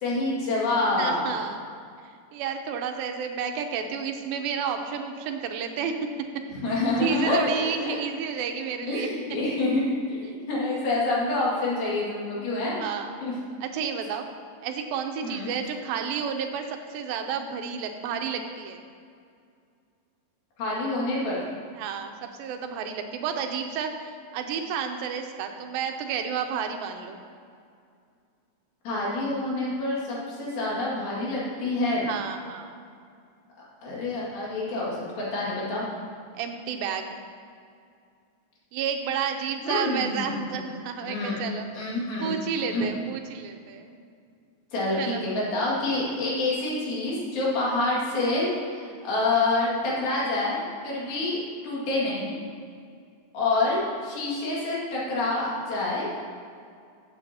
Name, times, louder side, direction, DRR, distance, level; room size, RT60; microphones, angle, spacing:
voice 1, 0.0-1.4 6.5-8.0 8.9-12.8 13.2-13.3 15.2-15.5 20.6-21.4 28.8-32.1 33.8-35.9 39.6-40.6 41.0-41.4 41.7-42.4 42.7-42.9 44.7-52.4 53.3-56.2, left 2 dB, 90° left, -6 dB, 4.0 m, -27 dB
voice 2, 1.0-1.6 2.3-6.0 7.0-9.1 12.8-13.1 13.6-14.3 14.6-18.8 21.8-22.1 22.4-27.2 32.1-32.8 36.3-37.2 38.7-41.7 42.2-44.0 45.0-45.2 51.1-51.2, right 7 dB, 85° right, 5 dB, 2.5 m, -31 dB
14.0 x 7.9 x 2.8 m, 2.3 s
omnidirectional pair, 4.1 m